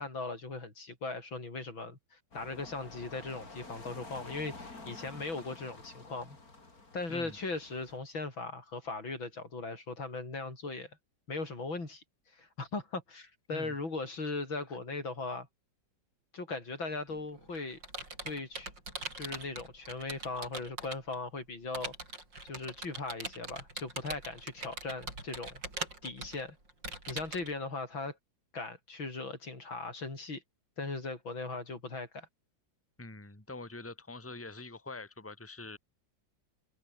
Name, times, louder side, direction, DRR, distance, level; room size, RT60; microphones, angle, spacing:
voice 1, 0.0-6.4 6.9-10.9 11.3-12.0 12.3-15.5 16.3-17.8 18.2-18.7 19.2-21.9 22.4-25.6 26.0-26.6 27.1-28.2 28.5-30.4 30.8-32.3, left 3 dB, 80° left, 6.2 m, -39 dB
sound 1, 2.3-8.0, left 3 dB, 45° left, 4.8 m, -49 dB
Computer keyboard, 17.1-21.2 21.7-27.5, right 2 dB, 65° right, 8.1 m, -42 dB
voice 2, 33.0-35.8, left 2 dB, 5° left, 2.6 m, -45 dB
omnidirectional pair, 2.1 m